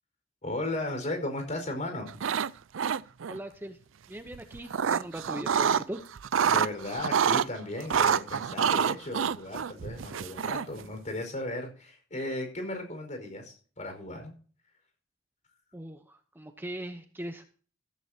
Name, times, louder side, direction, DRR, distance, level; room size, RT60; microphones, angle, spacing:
voice 1, 0.4-2.2 6.4-14.3, left 1 dB, 40° left, 5 dB, 4.9 m, -36 dB
sound 1, 2.1-2.5 2.7-3.4 4.3-5.8 6.2-7.5 7.9-10.8, right 7 dB, 85° right, 0.5 m, -27 dB
voice 2, 3.3-3.8 4.1-6.0 15.7-17.4, right 1 dB, 10° right, 7 dB, 0.8 m, -40 dB
14.5 x 14.0 x 2.8 m, 0.41 s
head